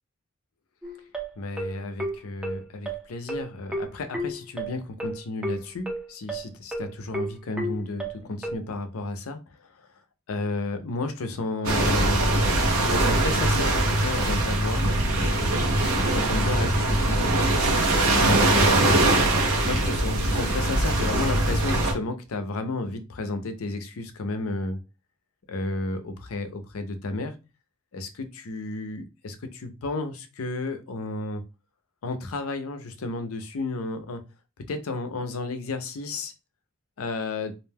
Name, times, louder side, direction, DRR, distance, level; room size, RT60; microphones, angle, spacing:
sound 1, 0.8-8.6, right 1 dB, 5° right, 0.5 m, -32 dB
voice 1, 1.4-9.9 10.3-12.2 12.9-15.5 16.0-17.3 18.1-19.1 19.6-24.8 25.5-27.3 27.9-31.4 32.0-34.2 34.7-36.3 37.0-37.5, left 2 dB, 75° left, 8 dB, 0.5 m, -32 dB
sound 2, 11.6-21.9, right 1 dB, 85° right, 0.8 m, -22 dB
2.5 x 2.1 x 3.3 m, 0.30 s
head